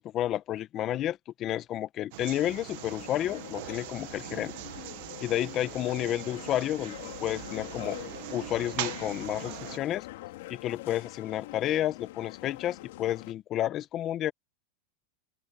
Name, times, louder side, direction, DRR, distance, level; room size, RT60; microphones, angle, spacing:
voice 1, 0.0-4.5 5.2-8.0 8.3-10.1 10.5-14.3, left 12 dB, 30° left, 1.1 m, -31 dB
sound 1, 2.1-9.8, right 19 dB, 55° right, 1.3 m, -41 dB
sound 2, 2.7-13.3, left 18 dB, 65° left, 2.4 m, -44 dB
open air
supercardioid pair, 150°, 0 cm